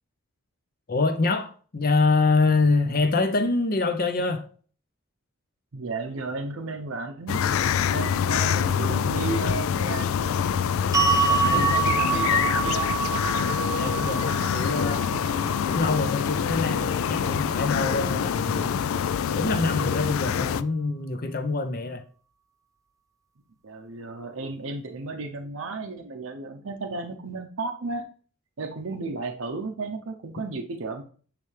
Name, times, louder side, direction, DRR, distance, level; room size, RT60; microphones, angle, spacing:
voice 1, 0.9-4.4 11.4-11.6 13.7-15.3 15.6-18.7 19.3-22.0, left 3 dB, 40° left, 0.7 m, -25 dB
voice 2, 5.7-7.4 7.9-10.2 11.2-12.9 23.6-28.1 28.6-31.0, right 3 dB, 65° right, 0.7 m, -34 dB
sound 1, 7.3-20.6, left 8 dB, 70° left, 0.3 m, -25 dB
sound 2, 10.9-17.1, right 5 dB, 15° right, 0.4 m, -27 dB
9.8 x 3.3 x 3.2 m
head